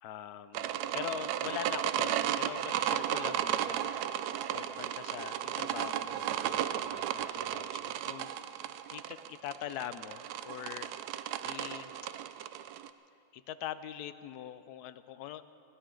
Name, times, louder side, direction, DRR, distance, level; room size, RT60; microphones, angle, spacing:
voice 1, 0.0-4.0 4.5-10.9 11.4-11.9 13.3-15.4, left 11 dB, 70° left, 13 dB, 1.0 m, -43 dB
sound 1, 0.5-12.9, right 11 dB, 70° right, 0.9 m, -34 dB
20.5 x 16.5 x 3.8 m, 2.7 s
omnidirectional pair, 2.0 m